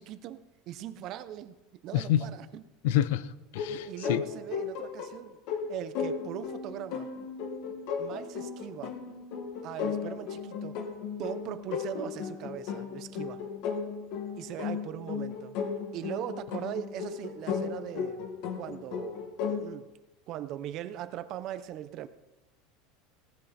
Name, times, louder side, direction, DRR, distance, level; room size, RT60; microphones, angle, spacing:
voice 1, 0.0-2.6 3.7-5.4 5.7-7.1 8.0-9.0 9.6-10.8 11.2-13.4 14.4-15.6 15.9-18.3 18.6-19.9 20.3-22.1, right 11 dB, 45° right, 12 dB, 0.9 m, -40 dB
voice 2, 1.9-2.2 2.8-4.2, left 12 dB, 85° left, 16 dB, 0.8 m, -28 dB
sound 1, 3.6-19.6, left 6 dB, 60° left, 2.0 m, -35 dB
17.5 x 11.5 x 4.4 m, 1.0 s
supercardioid pair, 150°, 0 cm